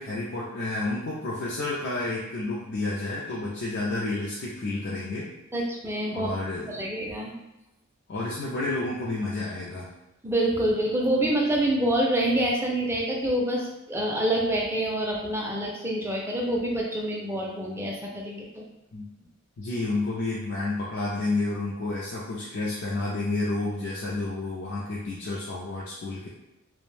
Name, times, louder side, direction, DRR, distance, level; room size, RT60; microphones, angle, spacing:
voice 1, 0.0-5.3 6.1-6.8 8.1-9.9 18.9-19.1 19.6-26.3, left 2 dB, 55° left, -6 dB, 0.4 m, -30 dB
voice 2, 5.5-6.3 6.7-7.3 10.2-18.6, right 1 dB, 10° right, -2 dB, 0.4 m, -26 dB
2.4 x 2.1 x 3.2 m, 0.95 s
head